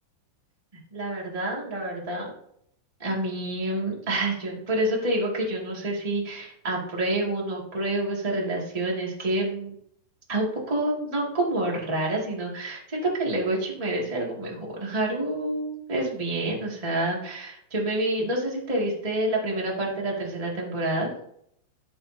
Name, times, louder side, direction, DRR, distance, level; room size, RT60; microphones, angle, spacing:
voice 1, 0.9-2.3 3.0-9.7 10.3-21.1, right 1 dB, 25° right, -3 dB, 0.7 m, -28 dB
15.0 x 6.4 x 2.8 m, 0.71 s
omnidirectional pair, 5.2 m